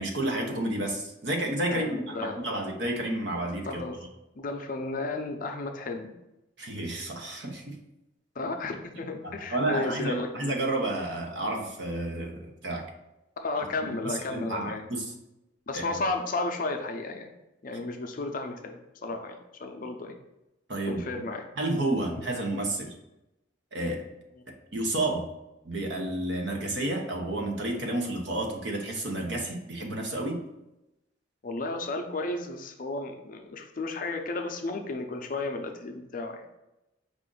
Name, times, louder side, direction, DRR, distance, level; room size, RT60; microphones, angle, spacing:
voice 1, 0.0-3.8 6.6-7.8 9.2-12.9 13.8-15.1 15.7-15.8 20.7-21.2 21.6-22.9 23.7-24.0 24.7-25.3 25.6-30.4, right 1 dB, 60° right, 2 dB, 0.8 m, -31 dB
voice 2, 1.7-2.4 3.7-4.0 4.4-6.1 8.4-10.3 13.4-14.8 15.7-17.3 17.6-20.1 20.9-21.4 31.4-36.5, left 3 dB, 45° left, 5 dB, 0.5 m, -33 dB
5.0 x 2.5 x 3.8 m, 0.93 s
head